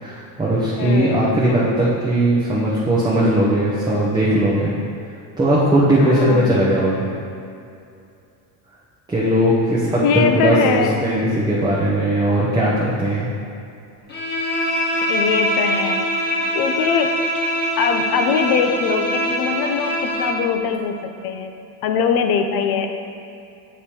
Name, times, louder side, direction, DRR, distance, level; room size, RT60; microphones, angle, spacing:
voice 1, 0.0-4.7 5.4-7.0 9.1-13.3, right 1 dB, 10° right, -8 dB, 0.7 m, -18 dB
voice 2, 0.8-1.2 6.0-6.5 10.0-11.0 15.1-16.0 16.5-17.4 17.8-21.5 21.8-22.9, left 6 dB, 50° left, 6 dB, 0.7 m, -21 dB
Bowed string instrument, 14.1-20.5, equal, 20° left, 1.2 m, -23 dB
8.7 x 3.3 x 4.3 m, 2.6 s
cardioid pair, 135°, 47 cm